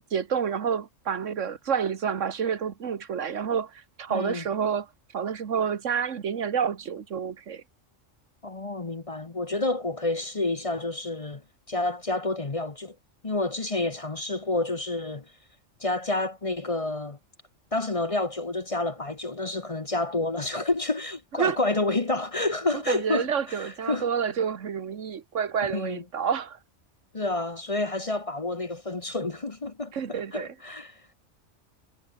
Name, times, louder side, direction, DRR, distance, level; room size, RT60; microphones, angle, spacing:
voice 1, 0.1-7.6 21.4-21.6 22.9-26.6 29.9-30.5, right 7 dB, 75° right, 1.6 m, -29 dB
voice 2, 4.1-4.4 8.4-11.4 11.7-12.9 13.2-15.2 15.8-17.2 17.7-24.1 25.7-26.0 27.1-31.0, left 2 dB, 30° left, 1.1 m, -29 dB
omnidirectional pair, 1.3 m